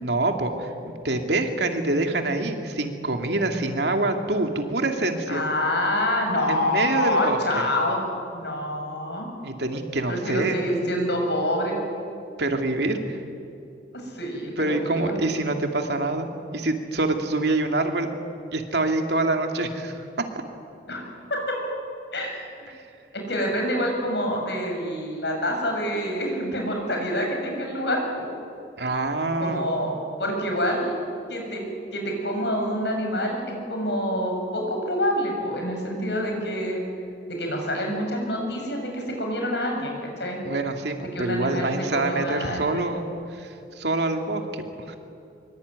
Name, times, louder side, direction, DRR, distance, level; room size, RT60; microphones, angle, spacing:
voice 1, 0.0-0.7 1.0-5.4 6.5-7.6 9.4-10.6 12.4-13.2 14.6-16.3 16.5-18.1 18.5-20.0 28.8-29.7 40.5-43.0 43.3-44.9, right 2 dB, 70° right, 4 dB, 2.6 m, -26 dB
voice 2, 5.3-8.0 8.3-9.3 10.1-11.8 13.9-15.1 20.9-21.0 21.3-21.6 22.1-22.7 23.1-28.3 29.4-29.9 30.2-30.9 31.3-36.8 37.3-40.4 41.1-42.9, equal, 70° left, 2 dB, 7.1 m, -27 dB
24.5 x 23.0 x 9.6 m, 2.6 s
head